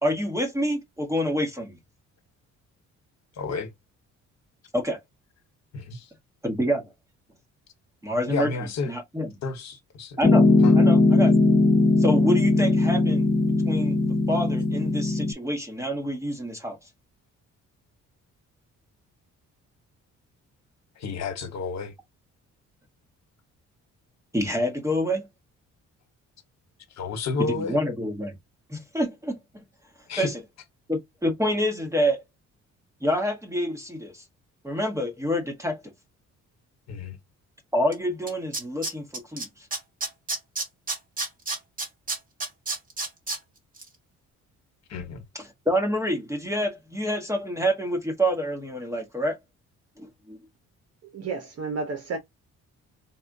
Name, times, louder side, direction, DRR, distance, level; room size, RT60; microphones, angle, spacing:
voice 1, 0.0-1.8 4.7-5.0 6.4-6.9 8.0-8.5 8.9-9.3 10.2-10.5 10.7-11.3 12.0-13.3 13.7-14.0 14.3-16.8 24.3-25.3 27.6-28.3 28.7-29.4 30.2-30.4 30.9-32.2 33.0-34.2 34.6-35.8 37.7-39.5 45.3-49.4 50.0-50.4, equal, 10° right, 1.0 m, -27 dB
voice 2, 3.3-3.7 5.7-6.1 8.3-8.9 9.4-10.2 10.6-10.7 21.0-21.9 26.9-27.8 30.1-30.3 36.9-37.2 44.9-45.2, left 4 dB, 60° left, 1.2 m, -31 dB
Piano, 10.2-15.3, left 2 dB, 15° left, 0.7 m, -19 dB
Tools, 37.9-38.0 38.3-39.4 39.7-43.4 43.8-43.9, right 3 dB, 30° right, 1.4 m, -29 dB
voice 3, 51.0-52.2, right 4 dB, 55° right, 0.9 m, -31 dB
4.1 x 2.4 x 2.6 m
cardioid pair, 90°, 30 cm